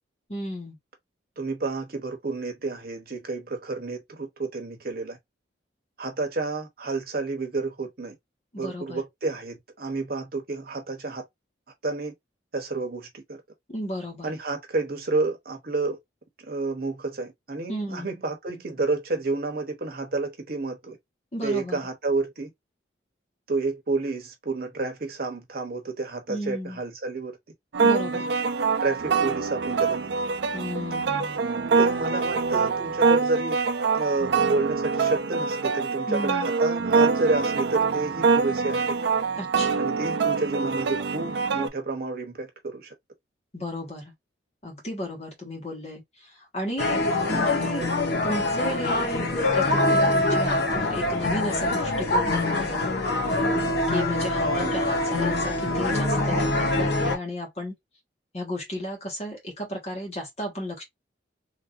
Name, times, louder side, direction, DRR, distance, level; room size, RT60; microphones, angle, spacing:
voice 1, 0.3-0.8 8.5-9.0 13.7-14.3 17.7-18.1 21.3-21.8 26.3-26.8 27.8-28.3 30.5-31.4 36.1-36.5 39.4-39.8 43.5-44.1 44.6-47.0 47.3-47.9 48.2-53.5 53.9-57.8 58.3-60.8, left 1 dB, 35° left, 1.3 m, -34 dB
voice 2, 1.4-5.2 6.0-8.2 8.6-11.2 11.8-12.1 12.5-13.4 14.2-16.0 16.4-21.0 21.4-22.5 23.5-27.4 28.1-28.2 28.8-30.1 31.8-33.6 33.9-39.0 39.8-42.9 47.3-47.6 54.4-54.8, right 3 dB, 50° right, 1.0 m, -30 dB
sound 1, 27.7-41.7, right 5 dB, 70° right, 0.5 m, -24 dB
Palm Cove - Apres Singer, 46.8-57.2, left 2 dB, 60° left, 1.0 m, -24 dB
3.3 x 2.7 x 2.5 m
head